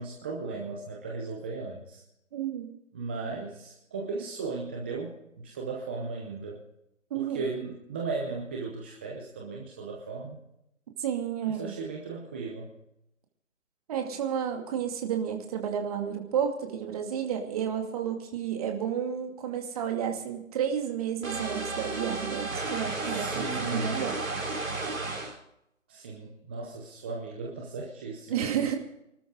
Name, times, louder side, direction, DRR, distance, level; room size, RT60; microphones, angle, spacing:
voice 1, 0.0-2.0 2.9-6.6 7.1-10.4 11.5-12.7 23.0-24.0 25.9-28.5, right 4 dB, 10° right, -1 dB, 0.7 m, -36 dB
voice 2, 2.3-2.7 7.1-7.4 11.0-11.7 13.9-23.4 23.7-24.2 28.3-28.8, right 8 dB, 30° right, 3 dB, 2.5 m, -31 dB
sound 1, 21.2-25.4, right 3 dB, 75° right, 4.6 m, -33 dB
25.0 x 13.0 x 3.9 m, 0.81 s
figure-of-eight pair, 155°, 40 cm